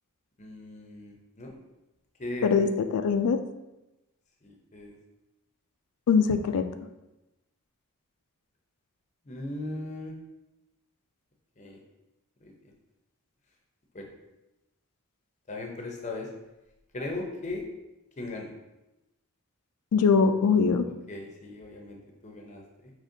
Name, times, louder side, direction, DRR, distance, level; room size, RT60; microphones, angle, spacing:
voice 1, 0.4-1.5 2.2-2.6 4.4-5.0 9.3-10.1 11.6-11.8 12.4-12.5 13.9-14.1 15.5-16.3 16.9-17.6 18.2-18.5 21.1-22.9, left 2 dB, 30° left, 1 dB, 0.7 m, -38 dB
voice 2, 2.4-3.4 6.1-6.6 19.9-20.9, left 5 dB, 85° left, 9 dB, 0.4 m, -22 dB
5.0 x 3.1 x 2.7 m, 0.98 s
head